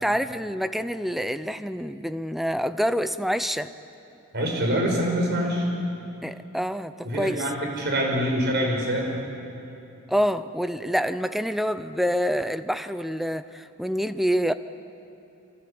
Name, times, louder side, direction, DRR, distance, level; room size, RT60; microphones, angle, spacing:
voice 1, 0.0-3.7 6.2-7.5 10.1-14.5, equal, ahead, 12 dB, 0.6 m, -27 dB
voice 2, 4.3-5.7 7.0-9.2, equal, 50° right, 1 dB, 6.1 m, -25 dB
27.5 x 24.5 x 8.7 m, 2.9 s
head